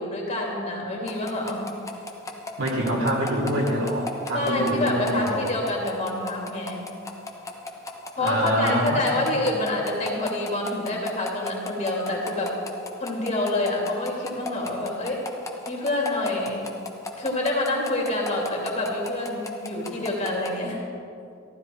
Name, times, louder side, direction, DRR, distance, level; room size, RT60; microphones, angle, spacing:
voice 1, 0.0-1.6 4.3-6.9 8.2-12.5 13.0-15.2 15.7-16.6 17.2-20.8, left 2 dB, 35° left, -2 dB, 2.9 m, -27 dB
sound 1, 1.1-20.5, left 3 dB, 15° left, 1.1 m, -35 dB
voice 2, 2.6-5.4 8.2-9.2, right 1 dB, 65° right, -3 dB, 3.0 m, -25 dB
15.5 x 12.5 x 4.7 m, 2.5 s
head